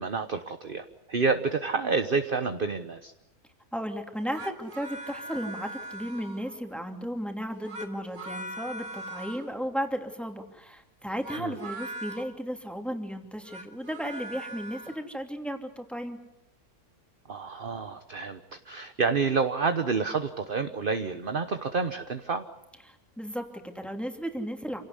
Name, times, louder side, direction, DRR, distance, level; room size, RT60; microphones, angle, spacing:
voice 1, 0.0-3.1 11.4-11.6 17.3-22.4, right 4 dB, 40° right, 8 dB, 1.2 m, -29 dB
voice 2, 3.7-16.2 22.9-24.8, equal, ahead, 4 dB, 2.8 m, -35 dB
sound 1, 4.1-6.6 7.5-9.5 11.1-12.3 13.3-15.0, right 1 dB, 85° right, 3.2 m, -41 dB
28.0 x 17.5 x 9.7 m, 0.88 s
omnidirectional pair, 1.6 m